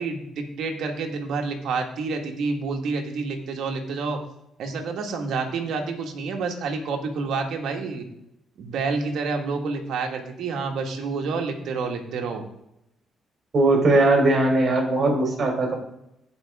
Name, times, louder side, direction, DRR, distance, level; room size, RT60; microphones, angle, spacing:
voice 1, 0.0-4.2 4.6-8.1 8.6-12.4, right 4 dB, 75° right, 3 dB, 1.7 m, -28 dB
voice 2, 13.5-15.8, right 2 dB, 50° right, 1 dB, 3.5 m, -19 dB
16.0 x 5.4 x 3.6 m, 0.82 s
cardioid pair, 90°, 0 cm